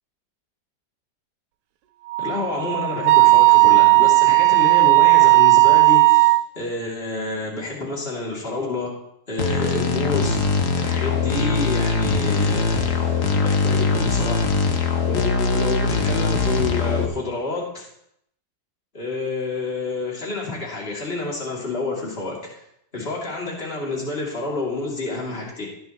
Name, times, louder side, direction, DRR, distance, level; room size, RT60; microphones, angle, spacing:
Wind instrument woodwind instrument, 2.1-6.4, right 24 dB, 70° right, 1.1 m, -14 dB
voice 1, 2.2-8.9 9.3-10.4 10.8-14.5 15.1-17.8 18.9-22.5 22.9-25.7, left 3 dB, 35° left, -3 dB, 3.1 m, -28 dB
sound 1, 9.4-17.1, left 4 dB, 70° left, 1.7 m, -21 dB
15.5 x 10.0 x 3.1 m, 0.74 s
omnidirectional pair, 1.9 m